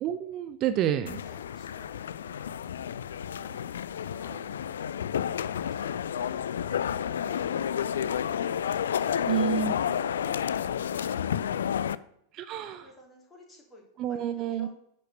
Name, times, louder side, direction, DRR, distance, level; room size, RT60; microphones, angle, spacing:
voice 1, 0.0-1.2 9.3-9.7 12.3-12.9 14.0-14.7, right 10 dB, 35° right, 11 dB, 0.5 m, -29 dB
voice 2, 0.7-2.5 3.3-5.0 12.7-14.7, left 1 dB, 15° left, -1 dB, 3.3 m, -53 dB
sound 1, 1.1-12.0, left 9 dB, 65° left, 0.3 m, -31 dB
9.9 x 5.4 x 6.5 m, 0.74 s
figure-of-eight pair, 90°, 0 cm